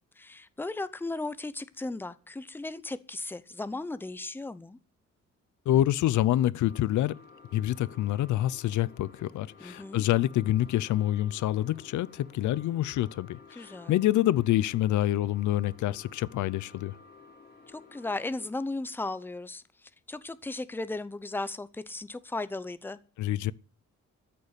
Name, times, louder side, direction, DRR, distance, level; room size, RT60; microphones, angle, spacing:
voice 1, 0.2-4.8 9.6-10.0 13.5-14.0 17.7-23.0, left 2 dB, 5° left, 0.7 m, -36 dB
voice 2, 5.7-7.2 7.5-17.0 23.2-23.5, left 13 dB, 80° left, 0.6 m, -27 dB
sound 1, 6.6-18.5, left 5 dB, 35° left, 4.3 m, -53 dB
14.0 x 6.7 x 9.8 m
cardioid pair, 160°, 29 cm